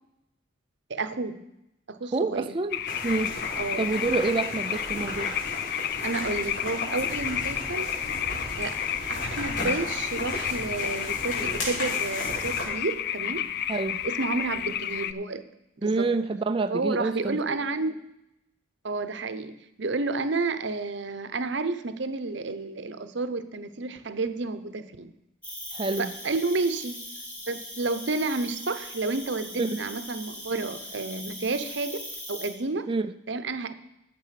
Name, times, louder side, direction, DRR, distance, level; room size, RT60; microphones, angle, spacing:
voice 1, 0.9-1.4 1.9-2.6 3.6-3.9 6.0-7.9 8.6-8.8 9.1-13.5 14.0-15.5 15.8-16.1 16.7-18.0 18.8-25.1 26.0-27.0 27.5-32.0 32.3-32.9 33.3-33.8, right 3 dB, 60° right, 11 dB, 0.8 m, -31 dB
voice 2, 2.1-3.4 3.8-5.4 13.7-14.0 15.8-17.6 25.7-26.1 29.6-29.8 32.9-33.1, right 3 dB, 25° right, 9 dB, 0.4 m, -28 dB
sound 1, 2.7-15.1, left 10 dB, 50° left, 0.4 m, -31 dB
sound 2, 2.9-12.6, left 1 dB, 80° left, 4.0 m, -35 dB
Cricket, 25.4-32.5, equal, 5° left, 3.1 m, -40 dB
12.5 x 7.5 x 5.8 m, 0.86 s
head